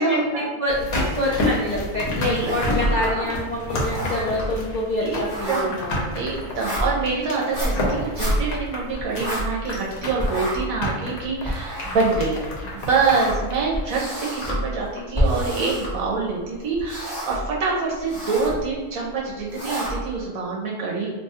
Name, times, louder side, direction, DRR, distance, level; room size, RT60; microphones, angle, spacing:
voice 1, 0.0-0.5 2.2-2.6 2.8-3.4 5.0-5.2 5.5-12.4 12.7-21.1, right 4 dB, 70° right, -3 dB, 1.1 m, -26 dB
voice 2, 0.6-6.1, left 1 dB, 60° left, -7 dB, 0.4 m, -26 dB
sound 1, 0.7-14.7 15.0-15.1, left 1 dB, 75° left, 1.3 m, -30 dB
sound 2, 2.2-3.2 3.5-9.9 10.2-16.4 16.7-17.6 17.9-18.6 19.2-20.2, equal, 20° left, 0.8 m, -29 dB
3.0 x 2.2 x 4.2 m, 1.3 s
omnidirectional pair, 1.5 m